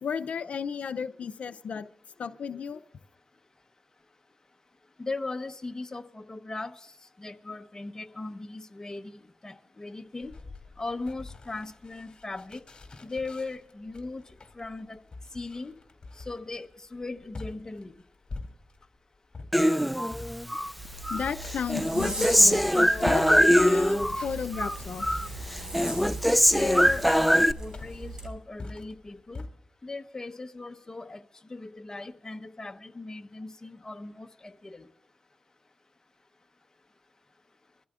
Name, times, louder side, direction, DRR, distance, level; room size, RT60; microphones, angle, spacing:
voice 1, 0.0-1.9 2.2-2.8 21.1-25.1, left 6 dB, 75° left, 0.5 m, -33 dB
voice 2, 5.0-6.8 7.2-10.3 10.8-12.6 13.0-14.2 14.5-15.0 15.3-15.7 16.2-18.0 26.6-29.4 29.8-31.2 31.5-34.9, left 3 dB, 25° left, 1.0 m, -38 dB
sound 1, 10.2-18.9 19.3-29.5, left 3 dB, 40° left, 2.6 m, -44 dB
Human voice, 19.5-20.7 21.1-24.3 24.5-25.3 25.5-27.5, equal, ahead, 0.4 m, -22 dB
Zipper (clothing), 20.8-28.3, right 1 dB, 25° right, 4.9 m, -40 dB
25.5 x 14.0 x 2.5 m
wide cardioid pair, 85°, 2 cm